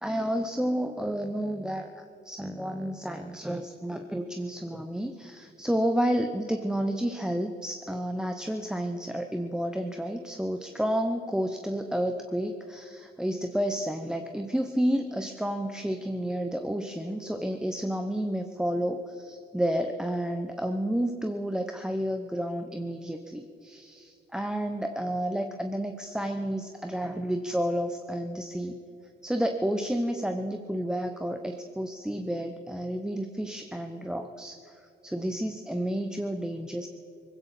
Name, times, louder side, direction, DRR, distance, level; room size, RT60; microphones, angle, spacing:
voice 1, 0.0-28.8 29.2-36.9, equal, 5° right, 6 dB, 0.8 m, -31 dB
20.0 x 16.0 x 4.2 m, 2.7 s
cardioid pair, 90°, 20 cm